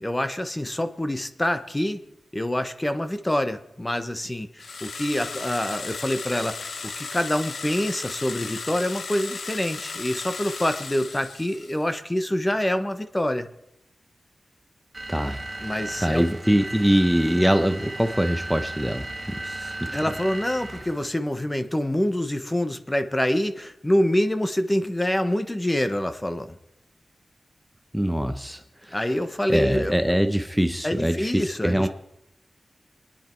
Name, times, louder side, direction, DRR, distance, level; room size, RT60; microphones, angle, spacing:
voice 1, 0.0-2.0 2.3-13.5 15.6-16.2 19.9-26.6 28.9-29.9 30.8-31.9, left 1 dB, 15° left, 9 dB, 1.1 m, -26 dB
sound 1, 4.6-11.9, left 4 dB, 80° left, 0.9 m, -36 dB
sound 2, 14.9-21.1, right 2 dB, 35° right, 1.6 m, -36 dB
voice 2, 15.1-15.4 16.0-20.0 27.9-29.0 29.5-31.9, equal, ahead, 7 dB, 0.9 m, -23 dB
25.0 x 10.0 x 4.6 m, 0.83 s
wide cardioid pair, 75°, 0 cm